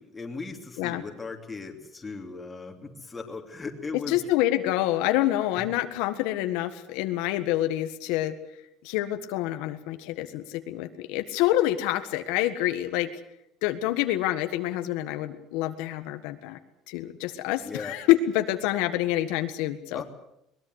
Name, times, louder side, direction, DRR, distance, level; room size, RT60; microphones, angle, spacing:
voice 1, 0.0-4.3 5.5-5.6 17.6-17.9 19.9-20.0, left 4 dB, 15° left, 2 dB, 3.1 m, -38 dB
voice 2, 3.9-8.3 8.8-13.1 13.6-16.6 16.9-20.0, left 14 dB, 80° left, 8 dB, 1.6 m, -27 dB
22.0 x 20.5 x 8.2 m, 0.80 s
cardioid pair, 150°, 0 cm